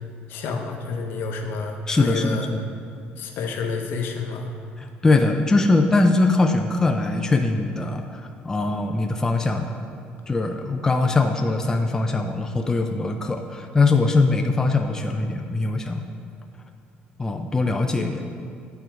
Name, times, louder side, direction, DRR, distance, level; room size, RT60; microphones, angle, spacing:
voice 1, 0.3-2.5 3.2-4.5, left 4 dB, 65° left, 3 dB, 0.8 m, -29 dB
voice 2, 1.9-2.6 4.8-8.2 8.4-9.7 10.3-16.0 17.2-18.3, left 3 dB, 15° left, 4 dB, 0.4 m, -21 dB
8.4 x 4.6 x 4.5 m, 2.4 s
cardioid pair, 120°, 4 cm